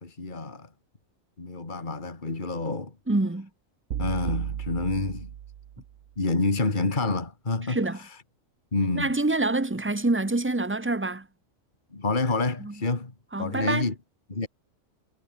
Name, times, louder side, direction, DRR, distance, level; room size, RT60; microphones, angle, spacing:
voice 1, 0.0-0.7 1.4-3.0 4.0-5.3 6.2-8.2 8.7-9.1 11.9-13.1 13.4-13.9 14.3-14.5, left 3 dB, 35° left, 2.6 m, -28 dB
voice 2, 3.1-3.5 7.7-8.0 8.9-11.2 12.6-12.7 13.3-13.9, right 2 dB, 10° right, 1.0 m, -26 dB
sound 1, 3.9-6.0, right 10 dB, 75° right, 1.2 m, -34 dB
omnidirectional pair, 1.4 m